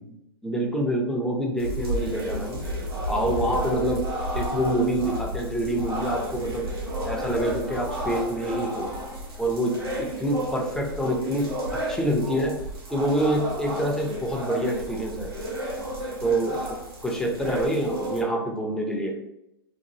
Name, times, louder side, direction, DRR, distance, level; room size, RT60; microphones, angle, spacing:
voice 1, 0.4-2.6 3.1-4.0 4.3-6.6 7.0-8.9 9.4-12.5 12.9-15.3 16.2-19.1, right 1 dB, 5° left, 0 dB, 0.6 m, -26 dB
sound 1, 1.6-18.2, equal, 80° right, 1.1 m, -32 dB
3.0 x 2.4 x 2.6 m, 0.85 s
figure-of-eight pair, 100°, 12 cm